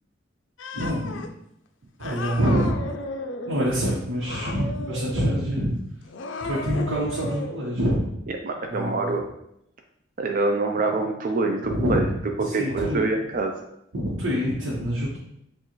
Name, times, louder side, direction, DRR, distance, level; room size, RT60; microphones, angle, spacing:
Cat, 0.6-1.3 2.0-3.7 4.2-5.5 6.0-7.6, left 2 dB, 75° left, 0.5 m, -34 dB
voice 1, 0.7-1.2 2.0-2.8 3.4-5.7 6.4-8.1 8.7-9.2 11.6-12.1 12.5-13.0 13.9-15.2, equal, 90° right, -6 dB, 1.1 m, -25 dB
voice 2, 8.3-9.3 10.2-12.1 12.4-13.5, right 3 dB, 45° right, 3 dB, 0.4 m, -25 dB
7.2 x 2.4 x 3.1 m, 0.77 s
head